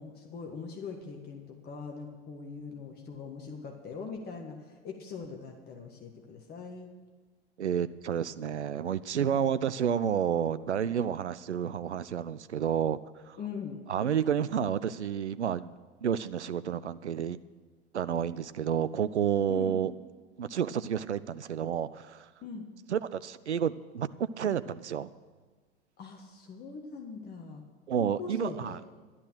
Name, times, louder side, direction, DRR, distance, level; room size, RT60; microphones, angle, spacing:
voice 1, 0.0-6.9 9.1-9.5 13.4-13.8 19.5-19.8 22.4-22.7 26.0-27.6 27.9-28.8, left 5 dB, 30° left, 2 dB, 1.6 m, -42 dB
voice 2, 7.6-13.0 13.3-13.4 13.9-15.8 16.0-17.4 17.9-19.9 20.4-22.3 22.9-25.1 27.9-28.8, right 8 dB, 85° right, 15 dB, 0.5 m, -30 dB
12.0 x 11.0 x 6.3 m, 1.4 s
figure-of-eight pair, 85°, 33 cm